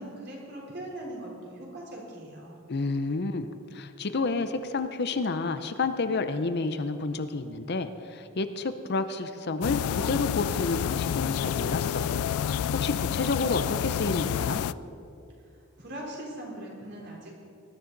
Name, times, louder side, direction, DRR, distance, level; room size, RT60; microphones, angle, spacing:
voice 1, 0.0-2.6 15.8-17.3, right 1 dB, 55° right, -3 dB, 3.8 m, -40 dB
voice 2, 2.7-14.6, left 3 dB, 50° left, 10 dB, 0.6 m, -30 dB
sound 1, 9.6-14.7, left 9 dB, 90° left, 0.3 m, -29 dB
19.5 x 12.5 x 4.0 m, 2.6 s
head